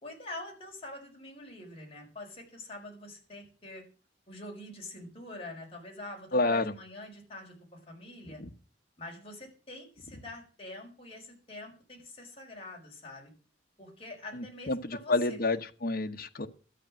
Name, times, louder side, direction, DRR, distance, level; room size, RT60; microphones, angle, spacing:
voice 1, 0.0-3.8 4.3-8.4 9.0-13.3 13.8-15.4, left 2 dB, 35° left, 5.3 m, -45 dB
voice 2, 6.3-6.7 8.4-8.5 14.3-16.5, left 2 dB, 55° left, 1.1 m, -29 dB
13.0 x 8.9 x 7.5 m
head